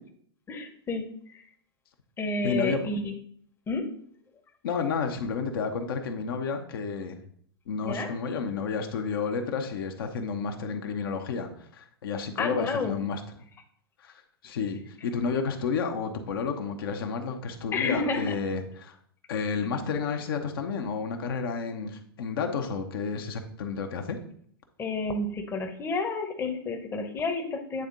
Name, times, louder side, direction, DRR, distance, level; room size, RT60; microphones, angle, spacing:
voice 1, 0.5-1.4 2.2-3.1 3.7-3.8 7.8-8.1 12.4-13.0 17.7-18.3 24.8-27.9, left 3 dB, 20° left, 4 dB, 0.9 m, -30 dB
voice 2, 2.4-2.9 4.6-7.2 7.7-13.2 14.0-19.0 19.3-24.2, left 5 dB, 65° left, 4 dB, 0.9 m, -31 dB
8.9 x 3.5 x 3.8 m, 0.62 s
hypercardioid pair, 105°, 13 cm